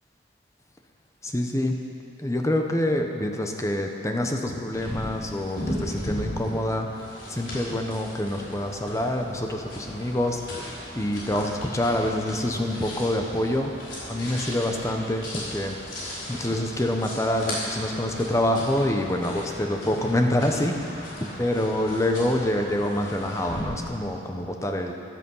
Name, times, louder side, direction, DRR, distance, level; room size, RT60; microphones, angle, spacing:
voice 1, 1.2-1.8 2.2-6.9 7.3-13.8 14.1-15.8 16.3-21.1 21.4-24.9, left 1 dB, 15° left, 3 dB, 0.9 m, -26 dB
sound 1, 4.7-23.6, left 1 dB, 85° left, 3.9 m, -37 dB
14.0 x 10.5 x 5.5 m, 2.5 s
head